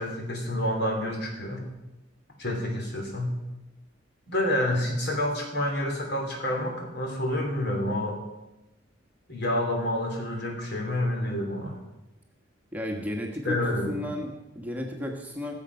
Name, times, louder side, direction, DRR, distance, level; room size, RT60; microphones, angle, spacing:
voice 1, 0.0-1.7 2.4-3.3 4.3-8.2 9.3-11.8 13.4-14.1, left 1 dB, 60° left, 1 dB, 3.2 m, -28 dB
voice 2, 12.7-15.5, left 1 dB, 10° right, 0 dB, 1.4 m, -33 dB
17.0 x 7.5 x 5.6 m, 0.99 s
head